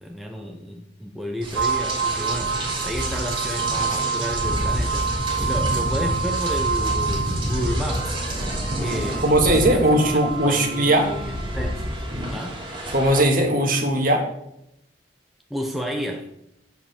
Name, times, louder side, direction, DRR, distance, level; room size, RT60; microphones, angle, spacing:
voice 1, 0.0-8.2 8.8-12.0 12.3-12.7 15.5-16.3, equal, ahead, 1 dB, 0.8 m, -32 dB
Rain, 1.4-13.2, equal, 30° right, 3.3 m, -28 dB
sound 1, 1.5-11.7, right 6 dB, 75° right, 0.6 m, -29 dB
voice 2, 9.2-11.1 12.9-14.3, right 1 dB, 45° right, 1 dB, 2.1 m, -19 dB
8.1 x 6.9 x 7.4 m, 0.81 s
head